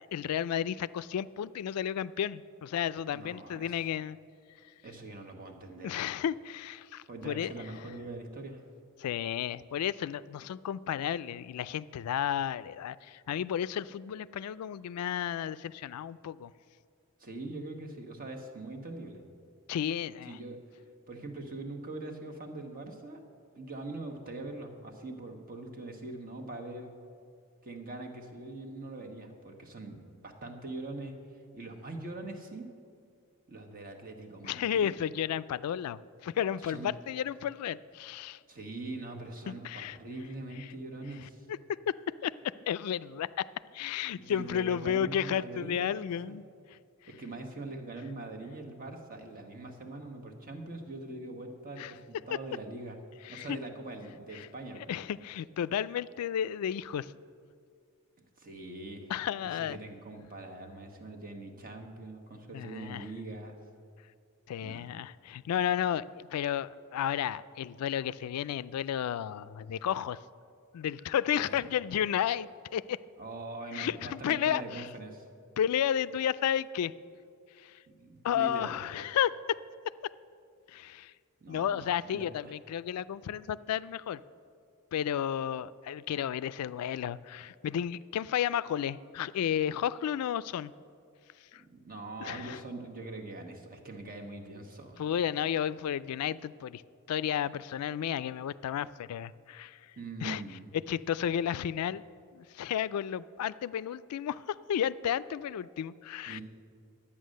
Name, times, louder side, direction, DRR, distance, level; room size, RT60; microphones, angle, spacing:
voice 1, 0.0-4.2 5.8-7.7 9.0-16.5 19.7-20.4 34.4-38.4 39.5-40.0 40.6-40.7 41.5-41.9 42.2-42.3 42.7-43.5 43.7-46.4 51.8-51.9 53.2-53.6 54.3-54.5 54.9-57.1 59.1-59.8 62.5-63.1 64.5-70.2 70.7-73.0 73.7-74.9 75.6-76.9 77.6-77.8 78.2-79.6 80.7-81.1 81.5-84.2 84.9-90.7 91.5-91.6 92.2-92.6 95.0-96.8 97.1-99.8 100.2-100.4 100.9-102.0 102.3-106.4, left 9 dB, 85° left, 16 dB, 0.3 m, -32 dB
voice 2, 3.1-3.9 4.8-6.1 7.1-8.6 17.2-19.2 20.3-20.6 21.1-23.2 23.5-26.9 27.6-31.2 31.5-32.7 33.5-34.9 36.6-36.9 38.5-41.5 44.2-46.3 47.1-53.0 53.3-55.0 58.4-59.1 59.6-63.6 64.6-64.9 71.3-71.6 73.2-75.2 78.0-78.8 81.4-82.6 91.7-95.1 100.0-100.7 106.3-106.4, right 2 dB, 40° right, 3 dB, 1.1 m, -42 dB
11.0 x 8.7 x 6.4 m, 2.3 s
head